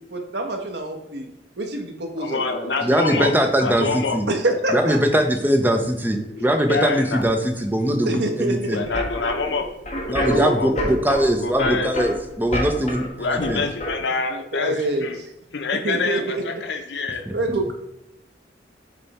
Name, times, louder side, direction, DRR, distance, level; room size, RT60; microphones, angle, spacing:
voice 1, 0.1-1.3 1.6-2.7 4.3-5.0 8.0-8.8 10.2-11.0 14.3-15.1 15.8-16.4 17.3-17.7, right 2 dB, 70° right, 3 dB, 1.1 m, -26 dB
voice 2, 2.2-4.2 6.3-7.2 8.6-9.7 10.0-10.7 11.4-11.9 13.1-15.2 15.5-17.3, left 4 dB, 80° left, 5 dB, 0.8 m, -26 dB
voice 3, 2.8-4.2 4.7-8.8 10.1-13.0 13.5-13.6 17.3-17.4, equal, 10° right, 5 dB, 0.7 m, -21 dB
sound 1, 8.8-14.0, left 1 dB, 40° left, 1.2 m, -29 dB
6.8 x 3.4 x 4.2 m, 0.83 s
head